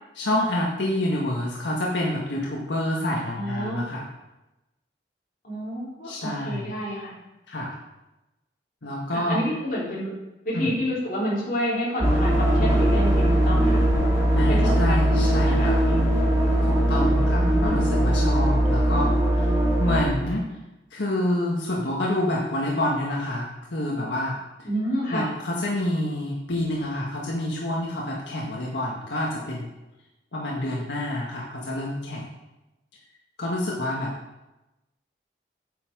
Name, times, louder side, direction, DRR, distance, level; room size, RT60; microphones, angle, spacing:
voice 1, 0.2-4.0 6.0-6.7 7.5-7.7 8.8-9.4 10.5-10.7 14.4-15.8 16.6-19.1 19.8-20.5 20.9-24.4 25.1-29.7 30.3-32.3 33.4-34.1, left 1 dB, 90° left, -3 dB, 1.6 m, -27 dB
voice 2, 3.3-3.8 5.4-7.1 9.1-10.1 10.4-13.8 14.5-16.0 17.2-17.8 24.6-25.3, equal, 50° left, -7 dB, 3.7 m, -29 dB
sound 1, 12.0-20.0, right 1 dB, 15° right, 2.8 m, -20 dB
8.6 x 7.0 x 4.8 m, 0.98 s
head